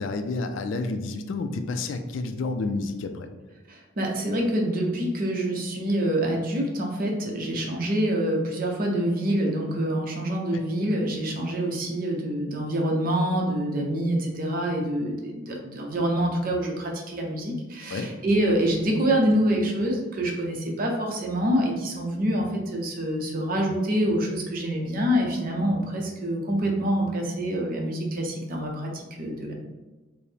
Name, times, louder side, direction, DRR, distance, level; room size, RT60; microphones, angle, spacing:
voice 1, 0.0-3.3 17.9-18.1, left 3 dB, 70° left, 6 dB, 0.3 m, -30 dB
voice 2, 3.7-29.5, right 1 dB, 45° right, 0 dB, 0.6 m, -26 dB
4.6 x 2.0 x 3.3 m, 1.2 s
head